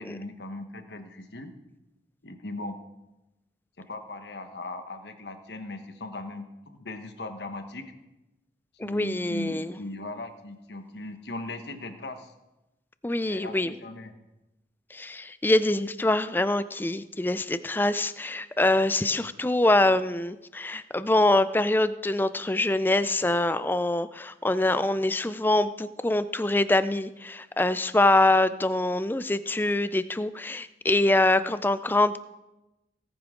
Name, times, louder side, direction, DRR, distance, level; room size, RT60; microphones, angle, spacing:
voice 1, 0.0-1.5 2.2-2.8 3.8-7.9 8.8-12.3 13.3-14.1 19.1-19.3, left 2 dB, 75° left, 7 dB, 1.2 m, -38 dB
voice 2, 8.8-9.7 13.0-13.7 14.9-32.2, left 2 dB, 10° left, 14 dB, 0.4 m, -24 dB
18.0 x 9.7 x 3.8 m, 0.98 s
head